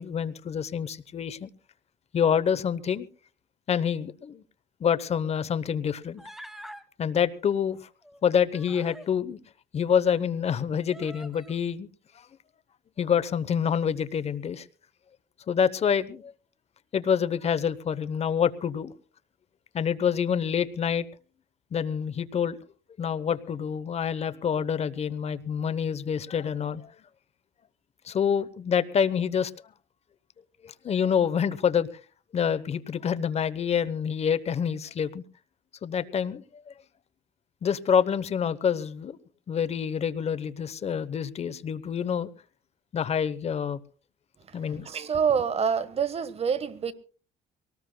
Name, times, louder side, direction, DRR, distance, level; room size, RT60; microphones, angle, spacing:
voice 1, 0.0-1.5 2.1-3.1 3.7-4.4 4.8-6.2 7.0-7.9 8.2-9.4 9.7-11.9 13.0-14.6 15.5-16.3 16.9-18.9 19.7-21.1 21.7-22.6 23.0-26.9 28.0-29.5 30.6-31.9 32.3-35.2 35.8-36.7 37.6-39.2 39.5-42.3 42.9-43.8 44.5-44.9, left 7 dB, 40° left, 0.9 m, -27 dB
Human voice, 6.2-6.8 8.0-9.1 9.9-10.0 10.9-11.6, equal, ahead, 1.2 m, -46 dB
voice 2, 44.8-46.9, right 6 dB, 35° right, 1.3 m, -26 dB
23.5 x 19.0 x 2.2 m
cardioid pair, 110°, 17 cm